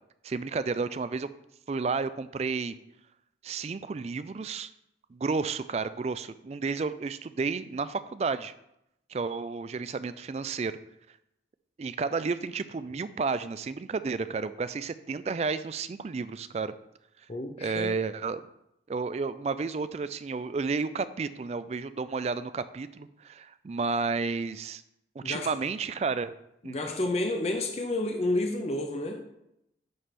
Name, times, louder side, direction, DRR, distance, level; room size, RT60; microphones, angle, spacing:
voice 1, 0.2-1.3 1.7-2.8 3.4-4.7 5.1-8.5 9.1-10.8 11.8-16.7 17.6-18.4 18.9-24.8 25.2-26.3 26.6-26.8, right 4 dB, 35° right, 14 dB, 0.3 m, -31 dB
voice 2, 17.3-18.0 25.2-25.5 26.6-29.2, left 2 dB, 35° left, 4 dB, 0.6 m, -30 dB
9.6 x 3.4 x 5.8 m, 0.82 s
head